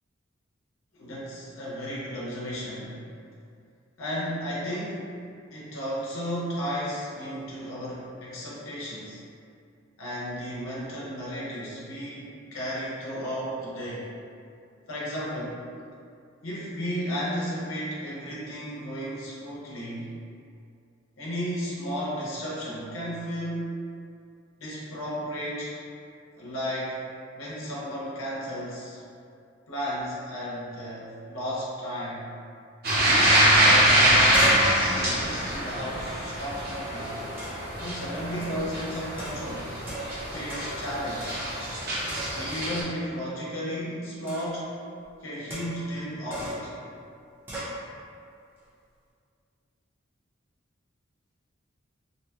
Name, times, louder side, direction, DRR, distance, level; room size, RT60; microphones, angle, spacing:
voice 1, 0.9-3.0 4.0-5.1 5.5-9.2 10.0-14.1 14.9-15.6 16.4-20.1 21.2-23.8 24.6-25.8 26.4-27.0 27.3-29.0 29.7-32.3 33.5-37.2 37.8-39.7 40.3-41.4 42.3-44.8 45.2-46.7, equal, 90° left, -7 dB, 0.7 m, -34 dB
sound 1, 32.8-42.8, right 1 dB, 50° right, 0.7 m, -24 dB
sound 2, 33.5-33.6 33.9-36.6 37.4-37.8 38.4-38.7 39.2-40.2 40.5-40.9 41.2-41.8 42.1-42.7 44.3-44.6 45.5-45.9 46.3-46.7 47.5-47.8, equal, 10° right, 0.6 m, -35 dB
2.7 x 2.2 x 2.8 m, 2.4 s
head